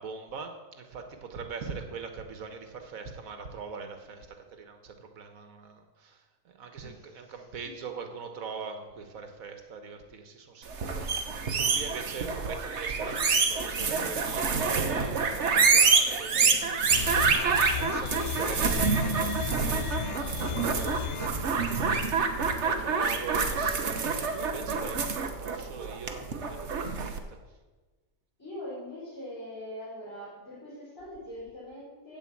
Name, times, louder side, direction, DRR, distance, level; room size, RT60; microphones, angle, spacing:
voice 1, 0.0-16.9 17.3-27.2, right 5 dB, 70° right, 6 dB, 1.6 m, -42 dB
voice 2, 6.8-7.7 28.4-32.2, left 1 dB, 15° left, -10 dB, 5.2 m, -42 dB
sound 1, 10.7-27.2, right 5 dB, 55° right, 1.2 m, -27 dB
sound 2, 16.9-21.3, left 10 dB, 60° left, 0.6 m, -36 dB
15.0 x 5.1 x 8.4 m, 1.3 s
omnidirectional pair, 1.5 m